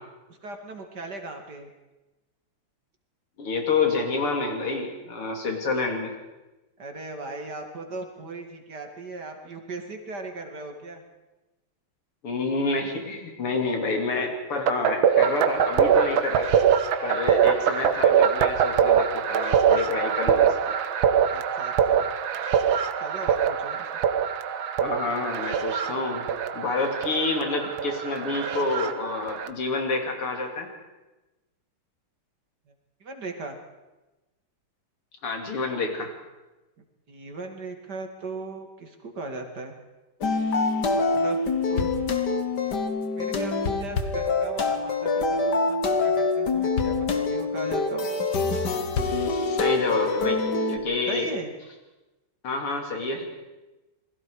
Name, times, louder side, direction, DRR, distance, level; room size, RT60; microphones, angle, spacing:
voice 1, 0.3-1.7 6.8-11.0 17.3-17.4 21.3-22.1 23.0-23.9 33.0-33.6 37.1-39.7 40.9-41.4 41.7-41.9 43.0-48.1 51.1-51.5, right 3 dB, 50° right, 4 dB, 2.8 m, -38 dB
voice 2, 3.4-6.1 12.2-16.5 17.0-20.5 24.8-26.3 26.5-30.7 35.2-36.1 49.4-50.4 50.7-51.3 52.4-53.3, left 3 dB, 90° left, 3 dB, 3.9 m, -28 dB
sound 1, 14.7-29.5, right 8 dB, 70° right, 1.8 m, -23 dB
sound 2, 40.2-50.8, left 3 dB, 55° left, 2.0 m, -25 dB
28.5 x 21.0 x 4.9 m, 1.1 s
omnidirectional pair, 2.4 m